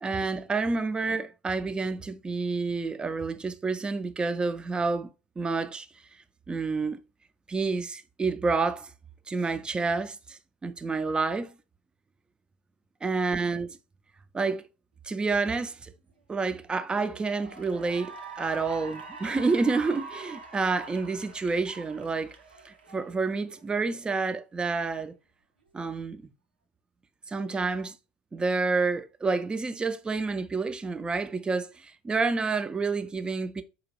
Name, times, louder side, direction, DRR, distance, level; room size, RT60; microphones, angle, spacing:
voice 1, 0.0-5.1 5.4-5.9 6.5-7.0 7.5-8.9 9.3-11.5 13.0-13.7 14.3-14.6 15.0-15.9 16.3-22.3 22.6-25.1 25.7-26.3 27.3-27.9 28.3-33.6, right 4 dB, 15° right, 0.4 m, -29 dB
Cheering / Applause, 16.6-16.7 17.1-23.6, right 3 dB, 85° right, 0.6 m, -45 dB
4.9 x 2.3 x 3.0 m
figure-of-eight pair, 70°, 5 cm